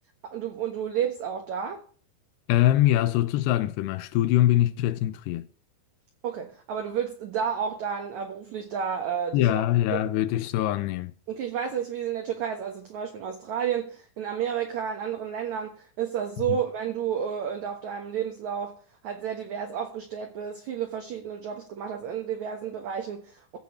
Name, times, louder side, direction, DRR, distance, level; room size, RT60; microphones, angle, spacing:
voice 1, 0.2-1.8 6.2-9.7 9.9-10.0 11.3-18.8 19.0-23.6, right 8 dB, 65° right, 2.0 m, -31 dB
voice 2, 2.5-5.5 9.3-11.1 16.5-16.6, left 13 dB, 80° left, 2.8 m, -23 dB
16.0 x 5.7 x 7.4 m
omnidirectional pair, 5.1 m